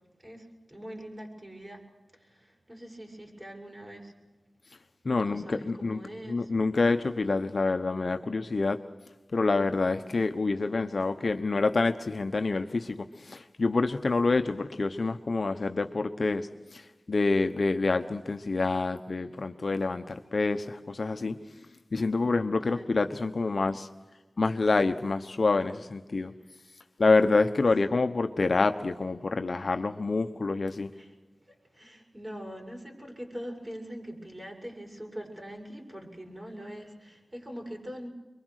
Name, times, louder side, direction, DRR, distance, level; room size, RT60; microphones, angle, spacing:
voice 1, 0.2-1.9 2.2-4.1 5.2-6.5 22.7-22.9 30.6-31.1 31.7-38.1, equal, 25° right, 1 dB, 7.0 m, -43 dB
voice 2, 5.0-6.0 6.3-8.8 9.3-21.4 21.9-23.9 24.4-26.3 27.0-30.9, left 3 dB, 65° left, 8 dB, 1.0 m, -27 dB
25.0 x 23.0 x 6.5 m, 1.1 s
cardioid pair, 45°, 0 cm